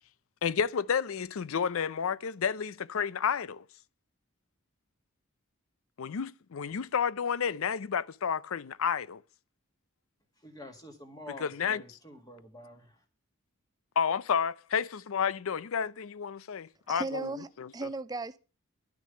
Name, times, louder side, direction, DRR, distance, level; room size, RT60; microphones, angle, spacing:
voice 1, 0.4-3.6 6.0-9.2 11.4-11.8 14.0-17.3 17.6-17.7, left 7 dB, 75° left, 0.5 m, -31 dB
voice 2, 10.4-13.0, left 1 dB, 15° left, 1.8 m, -48 dB
voice 3, 16.9-18.4, right 3 dB, 20° right, 0.4 m, -36 dB
11.5 x 6.1 x 6.7 m
head